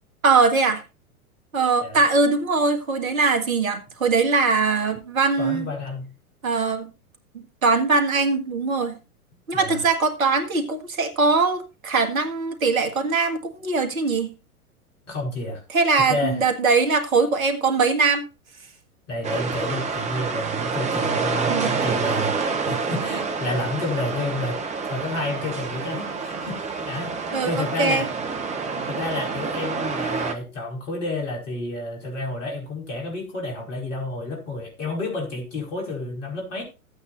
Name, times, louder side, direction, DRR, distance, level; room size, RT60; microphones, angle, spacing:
voice 1, 0.2-0.8 1.5-5.7 6.4-6.9 7.3-8.9 9.5-14.3 15.7-18.2 21.5-21.7 27.3-28.1, right 4 dB, 70° right, 1.9 m, -21 dB
voice 2, 5.4-6.1 9.5-9.9 15.1-15.6 16.0-16.4 19.1-24.6 24.8-27.2 27.4-28.1 28.9-36.6, left 2 dB, 55° left, 5.0 m, -30 dB
sound 1, 19.2-30.3, right 4 dB, 15° right, 1.1 m, -28 dB
15.0 x 8.8 x 2.6 m
figure-of-eight pair, 100°, 44 cm